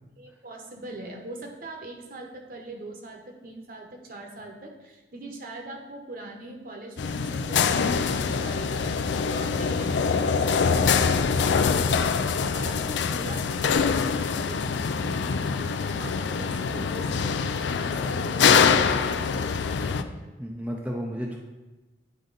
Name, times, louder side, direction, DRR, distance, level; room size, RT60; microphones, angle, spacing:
voice 1, 0.2-8.9 9.3-11.4 12.4-17.4 17.8-20.1, right 2 dB, 50° right, 2 dB, 1.0 m, -42 dB
sound 1, 7.0-20.0, left 5 dB, 75° left, 0.4 m, -24 dB
voice 2, 20.4-21.4, equal, 5° right, -1 dB, 0.5 m, -32 dB
9.7 x 3.9 x 4.0 m, 1.1 s
head